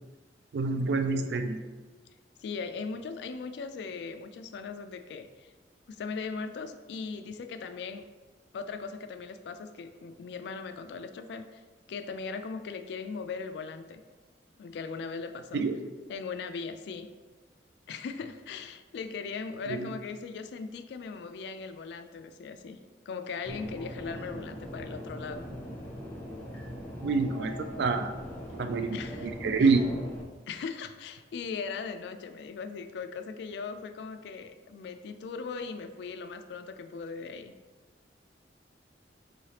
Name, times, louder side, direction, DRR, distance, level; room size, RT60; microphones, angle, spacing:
voice 1, 0.5-1.6 15.5-15.8 19.7-19.9 27.0-28.1 28.6-29.8, right 4 dB, 65° right, 7 dB, 0.4 m, -27 dB
voice 2, 2.4-5.5 5.9-8.0 8.5-11.6 11.9-14.0 14.6-15.6 16.1-17.1 17.9-22.8 23.1-25.5 28.9-29.3 29.6-29.7 30.5-37.5, left 5 dB, 70° left, 9 dB, 0.3 m, -39 dB
sound 1, 23.4-30.2, equal, 10° left, 0.6 m, -41 dB
4.7 x 3.2 x 2.8 m, 1.3 s
head